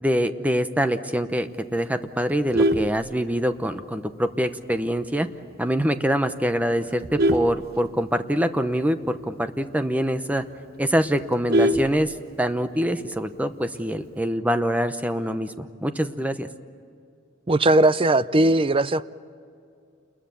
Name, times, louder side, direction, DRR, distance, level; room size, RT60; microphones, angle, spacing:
voice 1, 0.0-5.3 5.6-10.4 10.8-16.5, equal, 10° right, 9 dB, 0.9 m, -25 dB
Vehicle horn car horn honking, 2.3-3.8 4.2-4.5 4.8-4.9 5.3-5.4 5.7-6.1 6.6-8.4 8.8-8.9 9.2-9.3 9.7-9.8 10.2-10.3 10.5-12.6 13.7-14.2, right 1 dB, 50° right, 0.9 m, -25 dB
voice 2, 17.5-19.1, right 2 dB, 30° right, 15 dB, 0.5 m, -19 dB
29.0 x 21.0 x 7.0 m, 2.4 s
head